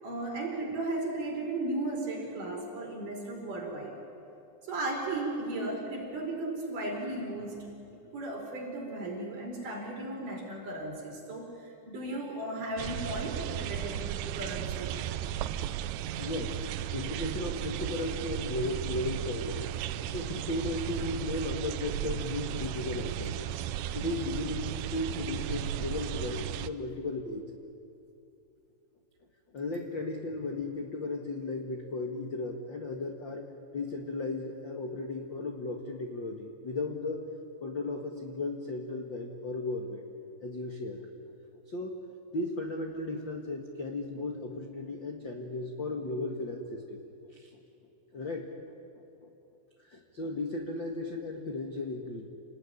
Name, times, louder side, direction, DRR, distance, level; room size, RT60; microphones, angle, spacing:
voice 1, 0.0-4.0 4.6-7.7 8.1-14.9 18.0-18.1, right 2 dB, 50° right, 0 dB, 6.0 m, -35 dB
sound 1, 12.8-26.7, right 11 dB, 85° right, 2.9 m, -35 dB
voice 2, 15.5-16.6 16.9-19.8 20.1-23.4 23.9-27.4 29.5-33.5 33.7-37.2 37.6-40.0 40.4-41.1 41.7-42.0 42.3-47.0 47.3-47.4 48.1-48.5 49.9-52.3, left 2 dB, 55° left, 2 dB, 1.3 m, -35 dB
28.5 x 19.0 x 9.9 m, 2.8 s
omnidirectional pair, 4.8 m